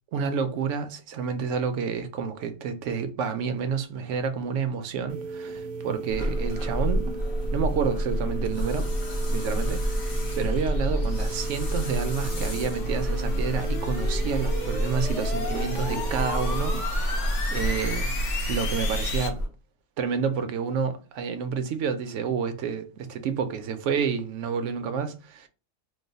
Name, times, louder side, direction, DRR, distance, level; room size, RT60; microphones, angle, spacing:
voice 1, 0.1-7.1 7.5-8.9 9.3-9.8 10.3-18.1 18.5-19.4 20.0-25.5, right 6 dB, 90° right, 0.9 m, -29 dB
sound 1, 5.1-16.8, right 4 dB, 60° right, 0.6 m, -37 dB
sound 2, 6.1-19.5, equal, 55° left, 1.1 m, -28 dB
sound 3, 8.5-19.3, left 3 dB, 80° left, 1.3 m, -36 dB
3.0 x 2.0 x 3.9 m
omnidirectional pair, 1.2 m